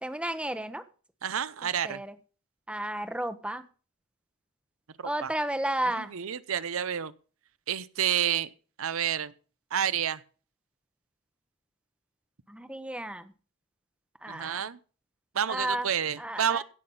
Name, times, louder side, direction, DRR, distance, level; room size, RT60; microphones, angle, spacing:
voice 1, 0.0-0.8 1.8-2.1 2.7-3.6 5.0-6.1 12.5-13.3 14.2-14.6 15.5-15.9 16.2-16.6, right 1 dB, 5° right, 11 dB, 0.9 m, -32 dB
voice 2, 1.2-2.0 5.0-5.3 6.0-7.1 7.7-8.5 8.8-9.3 9.7-10.2 14.3-14.8 15.3-16.6, right 9 dB, 70° right, 17 dB, 0.7 m, -29 dB
16.5 x 6.0 x 5.5 m, 0.38 s
head